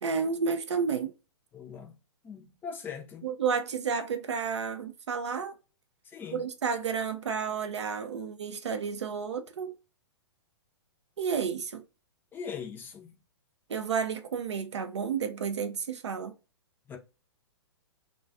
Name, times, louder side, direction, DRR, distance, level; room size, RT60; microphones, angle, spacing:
voice 1, 0.0-1.1 3.2-5.5 6.3-9.7 11.2-11.8 13.7-16.3, right 6 dB, 75° right, 0.4 m, -31 dB
voice 2, 1.5-1.9 2.2-3.3 6.1-6.4 12.3-13.1 16.9-17.0, left 6 dB, 15° left, 0.4 m, -40 dB
2.3 x 2.2 x 2.4 m
figure-of-eight pair, 115°, 15 cm